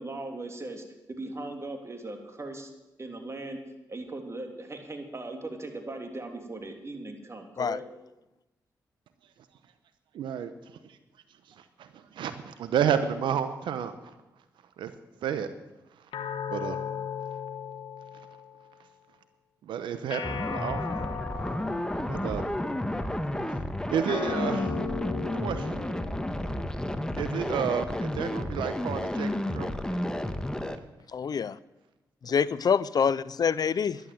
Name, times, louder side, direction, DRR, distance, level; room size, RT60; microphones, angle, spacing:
voice 1, 0.0-2.7 3.0-3.6 3.9-7.8 22.6-22.7 24.4-24.5 32.2-32.3, right 2 dB, 35° right, 4 dB, 3.1 m, -39 dB
voice 2, 10.1-10.5 11.6-13.9 14.8-14.9 15.2-15.5 16.5-16.8 19.7-21.0 22.1-22.4 23.9-24.7 25.4-25.7 27.2-29.3 29.5-29.7, right 8 dB, 80° right, 11 dB, 0.8 m, -30 dB
sound 1, 16.1-18.7 20.1-22.6 24.1-26.7, left 7 dB, 80° left, 1.2 m, -36 dB
sound 2, 20.2-30.8, left 1 dB, 10° left, 1.3 m, -31 dB
voice 3, 31.1-31.6 32.2-34.0, left 6 dB, 55° left, 19 dB, 0.5 m, -26 dB
11.5 x 11.0 x 7.8 m, 0.98 s
supercardioid pair, 45°, 8 cm